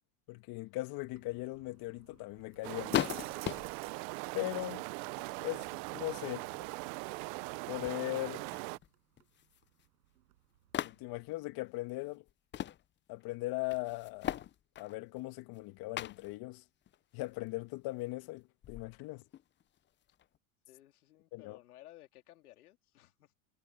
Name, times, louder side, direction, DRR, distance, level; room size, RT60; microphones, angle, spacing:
voice 1, 0.3-3.1 4.3-4.9 5.4-5.7 5.9-6.5 7.7-8.5 10.8-12.2 13.1-14.4 14.8-16.6 17.1-19.2 21.3-21.6, left 20 dB, 55° left, 1.5 m, -39 dB
sound 1, 0.9-11.5, right 14 dB, 85° right, 6.7 m, -58 dB
sound 2, 2.6-8.8, right 28 dB, 60° right, 0.8 m, -41 dB
sound 3, 2.9-4.0 5.0-5.8 6.2-6.8 7.3-7.4 7.7-8.9 9.2-9.8 10.7-11.3 12.3-12.9 13.2-13.3 13.7-15.6 16.0-16.4 16.9-17.5 18.0-18.1 18.6-20.4, left 11 dB, 25° left, 0.6 m, -39 dB
voice 2, 20.7-23.3, left 15 dB, 85° left, 3.7 m, -57 dB
hypercardioid pair, 100°, 44 cm